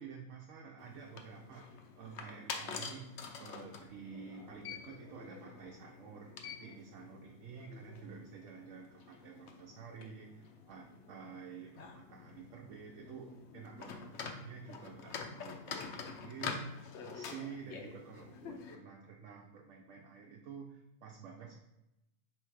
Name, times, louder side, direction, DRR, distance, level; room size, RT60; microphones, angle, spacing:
voice 1, 0.0-3.1 3.4-21.6, right 6 dB, 80° right, 0 dB, 0.9 m, -50 dB
sound 1, 0.8-18.8, left 5 dB, 70° left, 0.8 m, -47 dB
3.4 x 3.3 x 4.7 m, 0.89 s
omnidirectional pair, 1.3 m